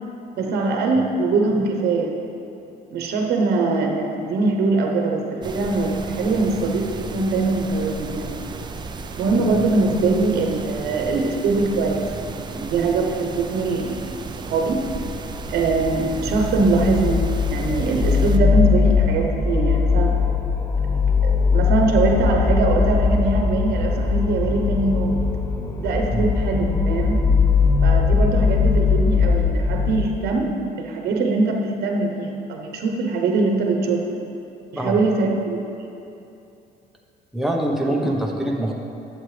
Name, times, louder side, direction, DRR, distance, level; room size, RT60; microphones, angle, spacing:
voice 1, 0.4-2.2 2.9-8.4 9.2-12.1 12.3-14.8 15.5-20.2 21.2-25.2 25.8-27.2 27.8-34.2 34.7-35.6 37.8-38.1, right 3 dB, 70° right, 2 dB, 1.0 m, -22 dB
sound 1, 5.4-18.4, right 4 dB, 25° right, 0.5 m, -34 dB
sound 2, 15.3-30.1, left 5 dB, 15° left, 0.8 m, -20 dB
voice 2, 37.3-38.7, right 1 dB, ahead, -1 dB, 1.1 m, -24 dB
11.0 x 7.9 x 3.4 m, 2.8 s
cardioid pair, 110°, 17 cm